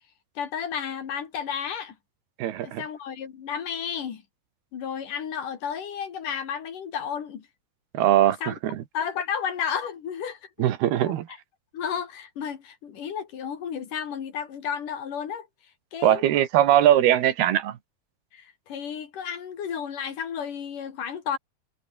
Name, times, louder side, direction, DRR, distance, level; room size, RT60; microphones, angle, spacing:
voice 1, 0.4-2.0 2.6-4.2 4.7-7.5 8.4-8.6 8.9-10.4 11.7-15.5 15.9-16.2 18.3-21.4, left 7 dB, 55° left, 3.7 m, -32 dB
voice 2, 2.4-2.8 7.9-8.8 10.6-11.3 16.0-17.8, right 12 dB, 75° right, 3.5 m, -21 dB
omnidirectional pair, 4.6 m